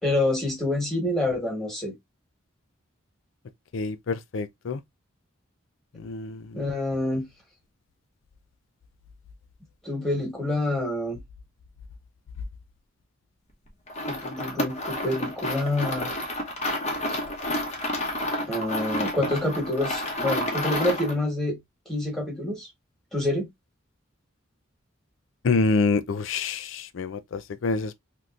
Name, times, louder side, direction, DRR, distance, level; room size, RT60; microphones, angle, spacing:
voice 1, 0.0-1.9 6.5-7.3 9.8-11.2 14.0-16.2 17.1-17.2 18.5-21.6 21.9-22.7 23.1-23.5, left 1 dB, ahead, 1.4 m, -27 dB
voice 2, 3.7-4.8 6.0-6.6 25.4-28.0, left 4 dB, 65° left, 0.4 m, -27 dB
sound 1, 13.9-21.2, left 1 dB, 35° left, 0.9 m, -30 dB
3.5 x 2.7 x 2.4 m
head